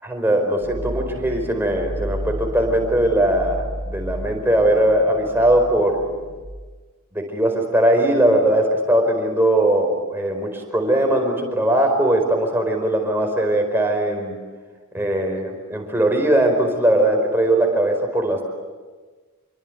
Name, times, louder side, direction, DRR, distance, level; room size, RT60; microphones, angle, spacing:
voice 1, 0.0-6.1 7.1-14.4 14.9-18.4, right 1 dB, 10° right, 2 dB, 4.9 m, -20 dB
sound 1, 0.6-6.5, equal, 65° left, 5.7 m, -32 dB
28.0 x 24.0 x 8.2 m, 1.4 s
head